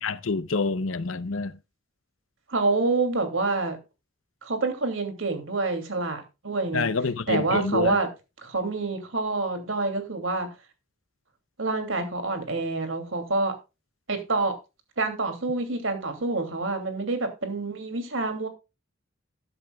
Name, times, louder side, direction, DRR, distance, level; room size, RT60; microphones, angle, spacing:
voice 1, 0.0-1.5 6.7-8.0, left 4 dB, 80° left, 0.7 m, -27 dB
voice 2, 2.5-3.8 4.4-6.9 7.3-8.1 8.4-10.5 11.6-13.5 14.1-14.5 15.0-18.5, right 3 dB, 75° right, 2.7 m, -27 dB
13.5 x 10.5 x 2.3 m
head